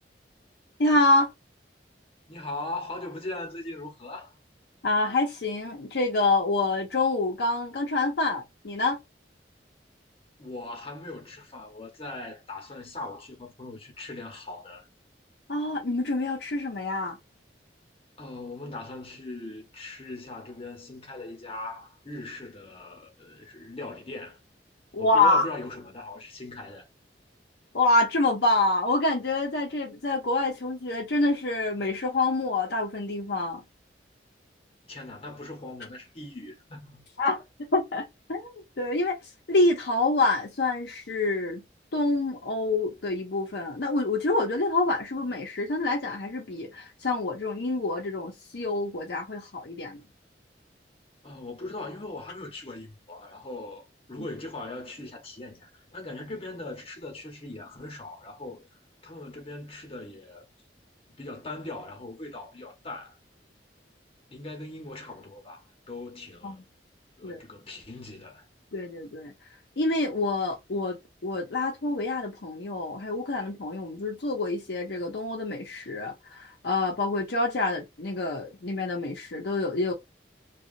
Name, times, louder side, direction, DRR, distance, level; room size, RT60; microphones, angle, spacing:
voice 1, 0.8-1.3 4.8-9.0 15.5-17.2 24.9-25.5 27.7-33.6 37.2-37.4 37.7-39.2 39.5-41.6 41.9-50.0 66.4-66.6 67.2-67.4 68.7-69.3 69.8-71.0 71.2-79.9, left 2 dB, 65° left, 0.7 m, -26 dB
voice 2, 2.3-4.3 10.4-14.9 18.2-24.4 25.0-26.9 34.9-37.0 51.2-58.7 59.0-60.4 61.2-63.2 64.3-66.6 67.2-68.5, left 2 dB, 35° left, 1.0 m, -40 dB
2.8 x 2.4 x 2.6 m
head